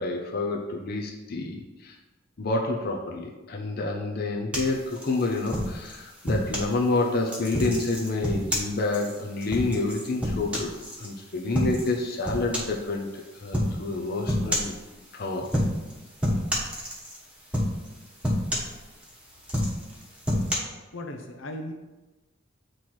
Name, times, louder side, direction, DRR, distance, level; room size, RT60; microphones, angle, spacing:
voice 1, 0.0-2.0 2.4-10.7 11.0-14.8 15.1-15.5, left 2 dB, 55° left, 0 dB, 0.7 m, -28 dB
sound 1, 4.5-6.7 7.3-11.1 11.5-11.9 12.2-12.8 13.5-13.8 14.3-14.8 15.4-15.9 16.2-17.2 17.5-17.9 18.2-19.1 19.4-20.5, equal, 5° right, 1.2 m, -28 dB
voice 2, 20.9-21.7, left 1 dB, 85° left, 5 dB, 0.8 m, -36 dB
7.7 x 3.2 x 4.4 m, 1.1 s
head